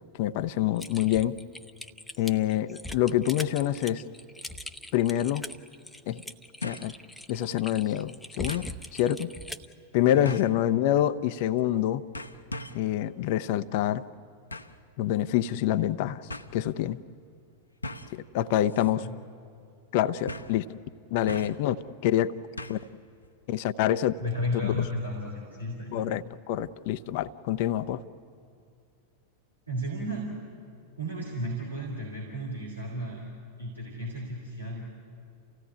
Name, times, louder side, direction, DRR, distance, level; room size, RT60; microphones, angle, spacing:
voice 1, 0.2-1.3 2.2-4.0 4.9-5.4 6.1-6.2 6.6-6.9 7.3-9.3 9.9-12.0 12.7-14.0 15.0-16.2 16.5-17.0 18.1-19.1 19.9-20.7 21.1-21.8 22.0-22.3 22.7-22.8 23.5-24.1 24.6-24.7 25.9-28.0, left 12 dB, 50° left, 14 dB, 0.7 m, -26 dB
Typing, 0.8-9.7, left 1 dB, 5° left, 0.8 m, -41 dB
sound 1, 4.7-4.8 6.6-7.0 7.4-7.5 8.5-8.8 10.2-10.6 11.6-11.8 12.1-12.9 14.5-14.8 15.8-15.9 16.3-16.5 17.8-18.2 18.7-18.9 19.2-19.3 20.3-20.6 21.3-21.7 22.6-22.9 23.2-23.3, left 1 dB, 80° left, 0.9 m, -39 dB
voice 2, 24.2-26.0 29.7-30.3 31.0-33.3 33.6-34.9, left 1 dB, 85° right, -3 dB, 3.9 m, -33 dB
28.5 x 16.5 x 9.5 m, 2.3 s
figure-of-eight pair, 90°, 0 cm